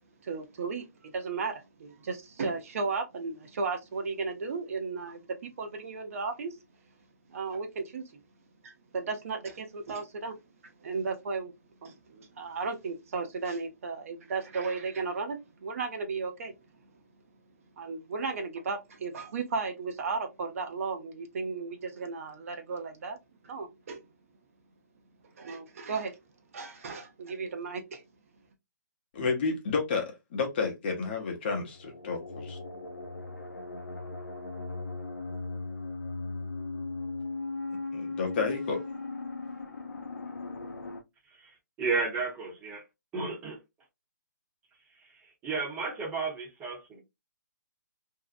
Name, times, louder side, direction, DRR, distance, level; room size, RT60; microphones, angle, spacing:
voice 1, 0.2-6.6 7.3-8.2 8.6-10.4 10.8-11.5 11.8-16.5 17.8-23.2 23.4-24.0 25.4-26.2 26.5-28.0, right 4 dB, 45° right, 0.6 m, -35 dB
voice 2, 29.1-32.6 37.9-38.8, left 4 dB, 35° left, 0.7 m, -31 dB
sound 1, 31.7-41.0, left 3 dB, 70° left, 0.6 m, -38 dB
voice 3, 41.8-42.8 43.1-43.6 45.4-47.0, right 4 dB, 15° right, 0.8 m, -32 dB
2.7 x 2.0 x 2.4 m
hypercardioid pair, 155°, 10 cm